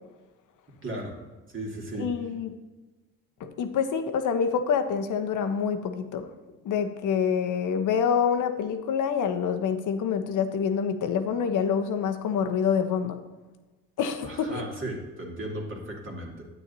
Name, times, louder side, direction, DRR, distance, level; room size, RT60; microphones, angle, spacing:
voice 1, 0.8-1.2 1.5-2.1 14.2-16.4, right 1 dB, 30° right, -1 dB, 2.2 m, -35 dB
voice 2, 1.9-2.5 3.6-6.3 6.6-13.2 14.0-14.6, left 7 dB, 55° left, 7 dB, 0.9 m, -26 dB
9.8 x 8.3 x 2.8 m, 1.2 s
hypercardioid pair, 60°, 37 cm